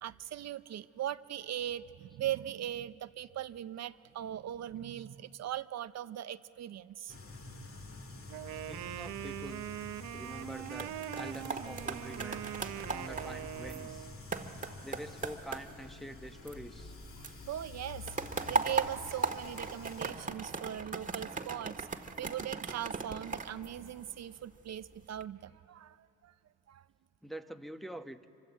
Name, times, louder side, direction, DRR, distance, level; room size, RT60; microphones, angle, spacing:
voice 1, 0.0-7.2 17.5-18.1 18.5-21.9 22.2-26.3 26.7-26.9, right 11 dB, 60° right, 12 dB, 0.7 m, -40 dB
sound 1, 7.1-20.1, left 3 dB, 45° left, 2.8 m, -48 dB
Wind instrument woodwind instrument, 8.3-14.2, right 14 dB, 90° right, 0.7 m, -42 dB
voice 2, 8.7-9.6 10.1-10.9 11.1-12.4 12.9-14.1 14.8-16.9 27.2-28.2, equal, ahead, 6 dB, 1.1 m, -45 dB
sound 2, 10.5-17.0 17.2-24.4 24.9-25.2, right 3 dB, 25° right, 1.7 m, -38 dB
26.5 x 24.5 x 8.3 m, 2.8 s
cardioid pair, 90°, 30 cm